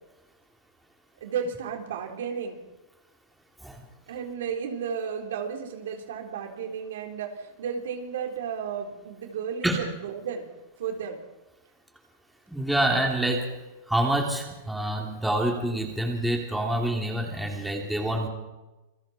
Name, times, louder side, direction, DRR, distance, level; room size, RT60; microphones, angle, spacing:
voice 1, 1.2-2.6 4.1-10.5 10.8-11.2, right 7 dB, 75° right, 3 dB, 3.9 m, -33 dB
voice 2, 12.5-13.5 13.9-18.3, right 1 dB, 5° right, 0 dB, 3.0 m, -27 dB
27.5 x 23.0 x 4.4 m, 1.1 s
supercardioid pair, 155°, 0 cm